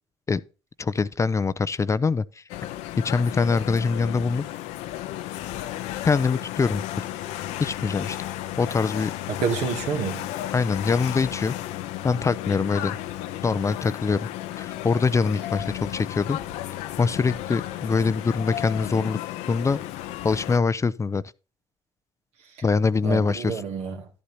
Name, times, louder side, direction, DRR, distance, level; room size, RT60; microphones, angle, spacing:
voice 1, 0.8-2.4 3.0-4.4 6.0-7.0 7.6-8.2 8.6-9.1 10.5-11.6 12.0-13.0 13.4-14.3 14.6-16.4 17.0-19.2 19.5-19.8 20.2-21.2 22.6-23.6, left 4 dB, 25° left, 0.5 m, -23 dB
sound 1, 2.5-20.6, left 14 dB, 80° left, 0.7 m, -33 dB
voice 2, 9.4-10.3 22.4-22.6 23.0-24.1, right 6 dB, 70° right, 2.1 m, -28 dB
11.5 x 8.4 x 2.7 m
supercardioid pair, 65°, 12 cm